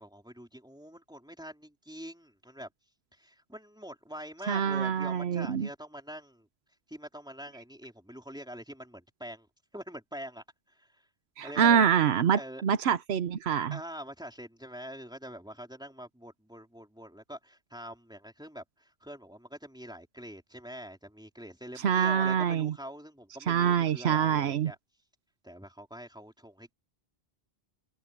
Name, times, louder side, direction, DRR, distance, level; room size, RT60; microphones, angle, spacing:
voice 1, 0.0-2.7 3.1-6.5 6.9-9.5 9.7-10.9 11.4-11.9 12.4-12.6 13.7-24.8 25.4-26.7, equal, 5° right, 3.9 m, -45 dB
voice 2, 4.5-5.7 11.4-13.8 21.8-22.7 23.5-24.7, right 8 dB, 80° right, 1.0 m, -25 dB
open air
omnidirectional pair, 1.1 m